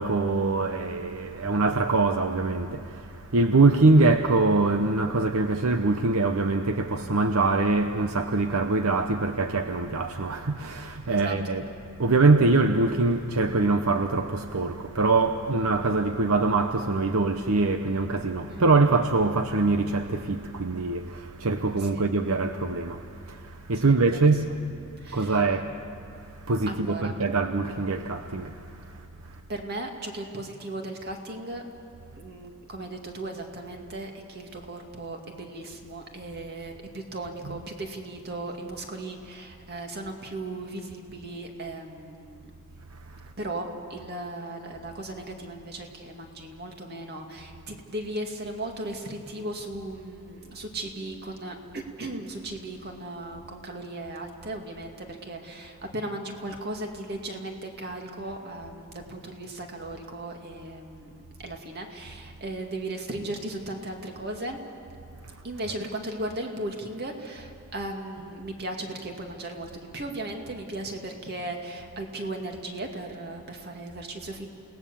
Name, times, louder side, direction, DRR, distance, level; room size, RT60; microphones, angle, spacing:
voice 1, 0.0-11.7 12.0-24.5 24.8-25.7 26.1-29.4 37.4-37.6 43.0-43.3, right 3 dB, 75° right, 0.9 m, -24 dB
voice 2, 23.8-24.3 25.0-25.4 26.7-27.2 29.5-31.7 32.2-42.4 43.4-61.1 61.4-64.6 65.4-74.5, right 1 dB, 45° right, 2.4 m, -36 dB
29.0 x 18.5 x 7.1 m
head